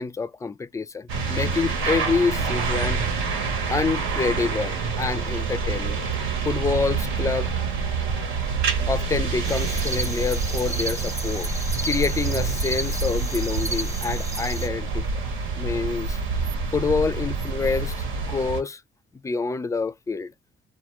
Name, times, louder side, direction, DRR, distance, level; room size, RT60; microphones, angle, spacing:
voice 1, 0.0-3.0 3.7-6.0 6.5-7.5 8.9-11.5 11.8-15.2 15.6-16.2 16.7-18.8 19.2-20.3, left 4 dB, 15° left, 0.3 m, -27 dB
sound 1, 1.1-18.6, right 4 dB, 85° right, 1.0 m, -27 dB
sound 2, 9.4-14.7, right 2 dB, 15° right, 0.8 m, -33 dB
2.3 x 2.3 x 3.0 m
cardioid pair, 90°, 20 cm